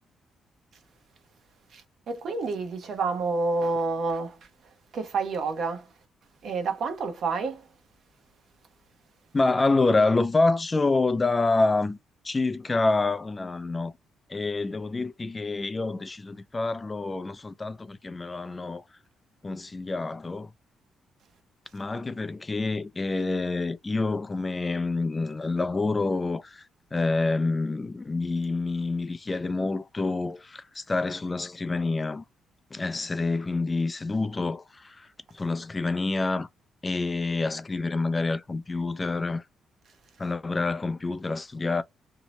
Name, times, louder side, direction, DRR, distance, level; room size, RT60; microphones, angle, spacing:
voice 1, 1.7-4.5 4.9-5.9 6.4-7.7, right 3 dB, 60° right, 0.8 m, -29 dB
voice 2, 9.3-12.0 12.2-13.9 14.3-18.8 19.4-20.5 21.7-26.7 26.9-32.2 32.7-35.1 35.3-36.5 36.8-39.4 40.2-41.8, left 3 dB, 20° left, 0.3 m, -27 dB
2.7 x 2.0 x 2.8 m
cardioid pair, 115°, 0 cm